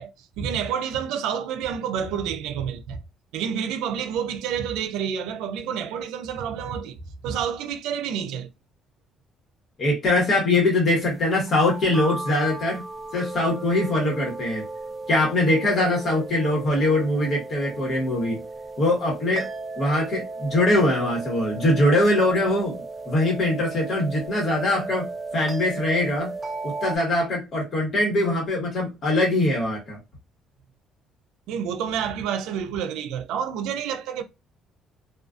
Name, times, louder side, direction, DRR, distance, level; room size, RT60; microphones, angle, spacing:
voice 1, 0.0-3.0 3.3-8.5 31.5-34.2, right 8 dB, 90° right, 0.4 m, -29 dB
voice 2, 9.8-12.8 13.1-14.6 15.1-18.4 18.8-19.5 19.8-25.1 25.3-26.3 26.6-30.0, left 1 dB, 45° left, 1.1 m, -22 dB
sound 1, 11.5-27.0, right 3 dB, 10° right, 0.4 m, -35 dB
2.3 x 2.3 x 2.4 m
cardioid pair, 125°, 0 cm